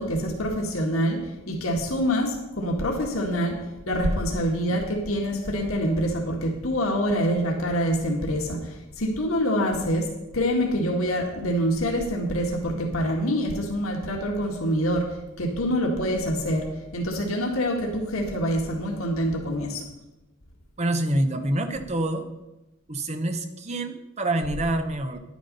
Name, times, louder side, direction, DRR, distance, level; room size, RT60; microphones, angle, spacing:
voice 1, 0.0-15.1 15.4-19.8, equal, 90° left, 1 dB, 1.8 m, -26 dB
voice 2, 20.8-22.3 22.9-25.2, right 1 dB, 30° right, 7 dB, 0.9 m, -26 dB
10.5 x 9.4 x 5.3 m, 1.0 s
head